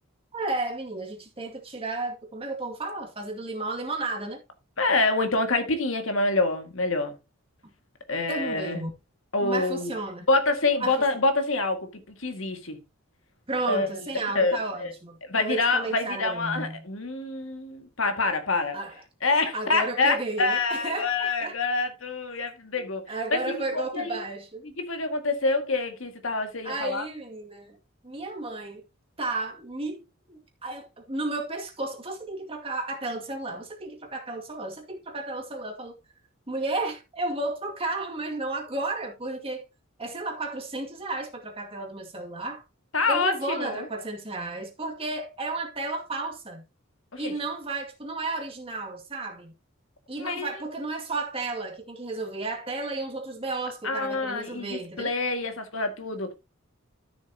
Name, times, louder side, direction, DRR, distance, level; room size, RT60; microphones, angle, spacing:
voice 1, 0.3-4.4 8.3-8.9 9.4-10.3 10.8-11.0 13.5-16.8 18.7-19.0 19.5-21.6 23.1-24.7 26.6-27.8 28.0-28.8 29.2-36.0 36.5-39.6 40.0-42.6 43.1-46.6 47.2-49.5 50.1-55.1, right 2 dB, 25° right, 2.2 m, -33 dB
voice 2, 4.8-7.2 8.1-8.8 9.3-9.9 10.3-12.8 13.7-13.9 14.4-14.9 15.3-18.8 19.2-23.0 23.3-24.2 24.8-27.1 42.9-43.9 47.1-47.3 50.2-50.6 53.8-56.3, left 3 dB, 75° left, 1.9 m, -26 dB
13.0 x 7.1 x 2.8 m
head